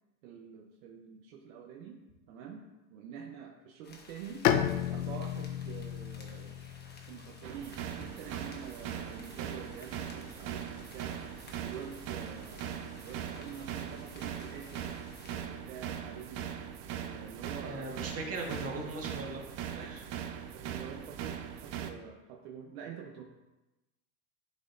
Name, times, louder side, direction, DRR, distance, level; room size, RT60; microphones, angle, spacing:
voice 1, 0.2-2.0 2.3-2.6 2.9-4.5 4.9-6.6 7.1-11.2 11.6-14.9 15.3-16.5 16.9-18.0 19.8-20.1 20.5-23.2, right 7 dB, 65° right, 1 dB, 1.1 m, -47 dB
sound 1, 3.8-15.5, left 3 dB, 20° left, 1.3 m, -55 dB
Bowed string instrument, 4.4-8.1, left 10 dB, 70° left, 0.7 m, -33 dB
sound 2, 7.4-21.9, right 9 dB, 50° right, 0.8 m, -40 dB
voice 2, 17.6-20.0, right 2 dB, 30° right, 0 dB, 1.8 m, -39 dB
11.0 x 4.3 x 2.7 m, 1.0 s
hypercardioid pair, 95°, 45 cm